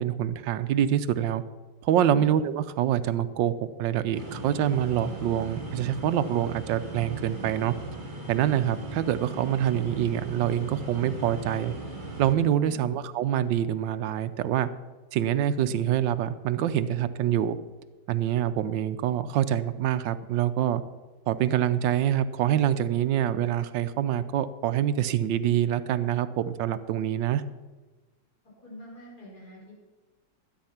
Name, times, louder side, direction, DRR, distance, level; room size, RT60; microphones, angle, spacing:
voice 1, 0.0-1.4 1.8-3.5 3.8-7.7 8.3-11.7 12.2-14.7 15.1-17.6 18.1-20.8 21.3-27.4, right 10 dB, 80° right, 12 dB, 1.3 m, -25 dB
voice 2, 2.0-2.3 12.6-13.0 28.6-29.7, left 1 dB, 55° left, -6 dB, 5.5 m, -43 dB
sound 1, 4.1-12.3, right 2 dB, 25° right, 2.0 m, -38 dB
13.0 x 8.5 x 5.8 m, 1.2 s
omnidirectional pair, 2.1 m